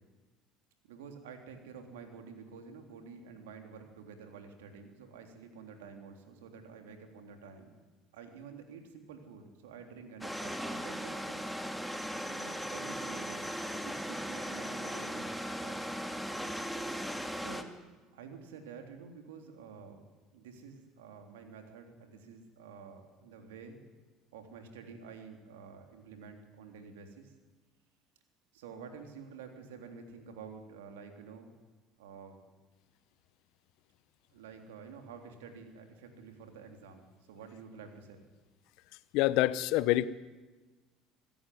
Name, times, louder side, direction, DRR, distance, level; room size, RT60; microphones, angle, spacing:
voice 1, 0.8-7.8 8.1-11.4 12.2-15.8 17.3-17.7 18.1-20.0 20.3-23.8 24.3-27.3 28.5-31.5 32.0-32.5 34.3-38.2, right 5 dB, 80° right, 5 dB, 3.5 m, -50 dB
sound 1, 10.2-17.6, equal, ahead, 2.5 m, -38 dB
voice 2, 39.1-40.1, left 16 dB, 70° left, 17 dB, 0.9 m, -26 dB
26.0 x 15.0 x 9.5 m, 1.3 s
hypercardioid pair, 70°, 0 cm